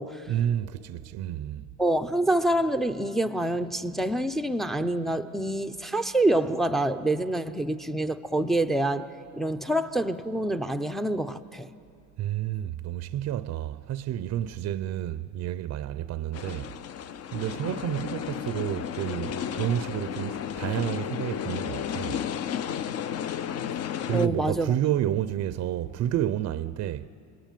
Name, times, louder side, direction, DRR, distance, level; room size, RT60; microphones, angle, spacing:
voice 1, 0.3-1.7 12.2-16.7 17.3-22.2 24.0-27.1, right 11 dB, 45° right, 0.6 m, -30 dB
voice 2, 1.8-11.7 24.1-24.7, right 1 dB, ahead, 0.6 m, -26 dB
sound 1, 16.3-24.3, left 9 dB, 40° left, 0.7 m, -33 dB
30.0 x 20.0 x 9.2 m
cardioid pair, 140°, 37 cm